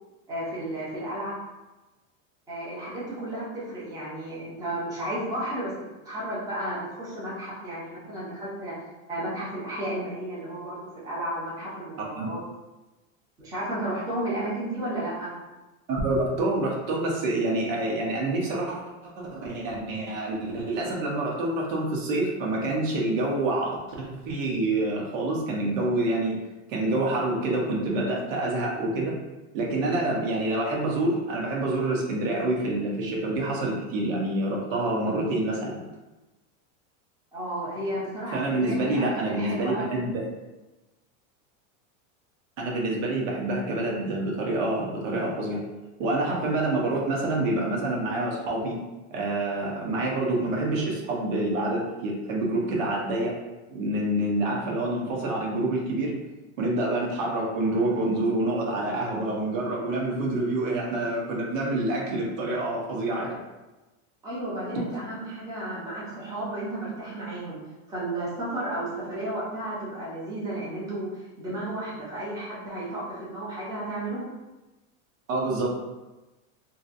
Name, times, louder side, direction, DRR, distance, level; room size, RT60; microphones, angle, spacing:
voice 1, 0.3-1.4 2.5-5.7 6.0-8.7 9.1-12.4 13.4-15.3 37.3-39.9 64.2-67.6 67.9-74.2, right 1 dB, 10° right, -8 dB, 0.7 m, -33 dB
voice 2, 15.9-23.7 24.0-26.4 26.7-29.1 29.5-35.8 38.3-40.2 42.6-45.6 46.0-48.8 49.1-53.3 53.7-56.1 56.6-63.4 75.3-75.7, right 2 dB, 75° right, -2 dB, 0.9 m, -27 dB
2.8 x 2.7 x 2.5 m, 1.1 s
supercardioid pair, 155°, 40 cm